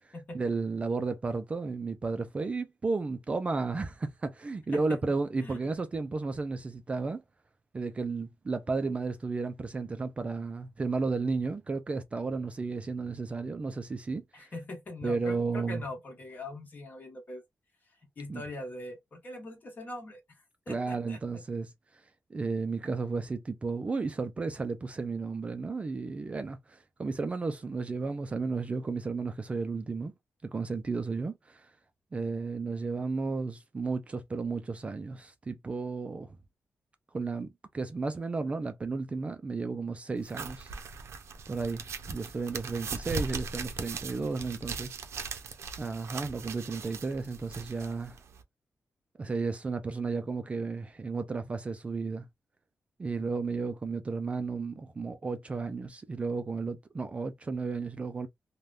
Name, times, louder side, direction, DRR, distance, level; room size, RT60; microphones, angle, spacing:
voice 1, 0.0-7.2 7.7-14.2 15.0-15.8 18.3-18.4 20.7-21.7 22.3-30.1 30.4-31.7 32.1-36.4 37.1-37.5 37.7-40.7 41.5-45.0 45.8-48.2 49.2-52.2 53.0-58.3, right 4 dB, 25° right, 0.3 m, -33 dB
voice 2, 5.4-6.0 14.3-17.4 18.2-21.4, left 2 dB, 40° left, 1.2 m, -42 dB
sound 1, 40.2-48.4, right 5 dB, 75° right, 0.6 m, -39 dB
3.3 x 2.2 x 2.4 m
wide cardioid pair, 160°, 5 cm